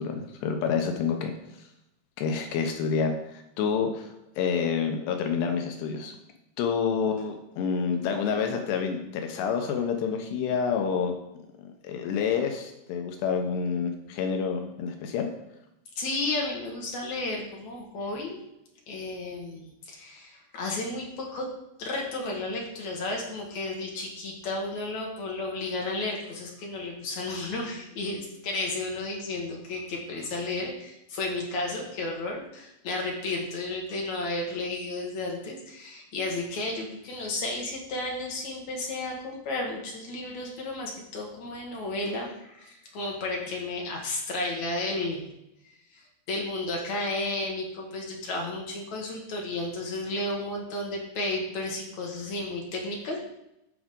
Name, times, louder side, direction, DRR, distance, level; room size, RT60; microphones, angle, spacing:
voice 1, 0.0-1.3 2.2-4.1 4.4-6.2 6.6-11.2 11.6-15.3, left 6 dB, 85° left, 4 dB, 3.0 m, -28 dB
voice 2, 16.0-18.4 18.9-21.5 21.8-45.2 45.6-53.2, left 2 dB, 55° left, -1 dB, 2.3 m, -33 dB
14.5 x 4.9 x 3.7 m, 0.85 s
omnidirectional pair, 4.8 m